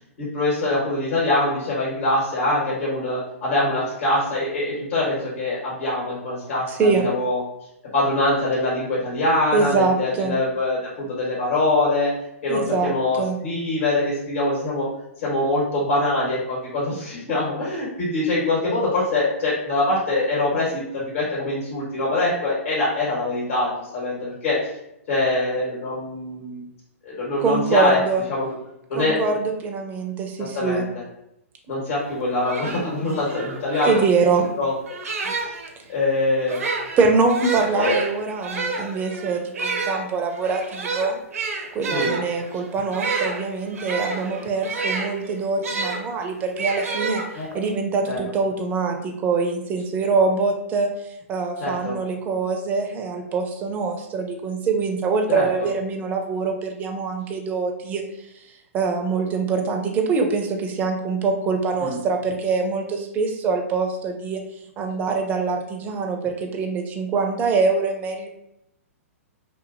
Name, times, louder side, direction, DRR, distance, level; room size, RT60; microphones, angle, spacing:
voice 1, 0.2-7.4 7.9-12.1 12.4-14.9 15.2-24.7 25.1-26.6 27.0-28.0 28.3-28.5 28.9-29.2 30.5-30.9 31.7-34.0 34.6-34.7 35.3-35.5 35.9-36.6 37.7-38.0 41.9-42.1 47.3-47.5 48.1-48.2 51.6-52.0 55.3-55.7 61.8-62.0, left 2 dB, 60° left, -7 dB, 1.3 m, -23 dB
voice 2, 6.7-7.0 9.5-10.3 12.5-12.9 13.2-13.4 27.4-28.2 28.9-30.9 33.8-34.5 37.0-41.2 41.7-50.9 51.3-58.0 58.7-64.4 64.8-68.3, right 4 dB, 20° right, 3 dB, 0.4 m, -24 dB
sound 1, 32.1-32.2 32.4-35.7 36.4-46.0 46.6-47.7, right 3 dB, 75° right, 0.6 m, -29 dB
2.6 x 2.6 x 2.5 m, 0.83 s
hypercardioid pair, 125°, 8 cm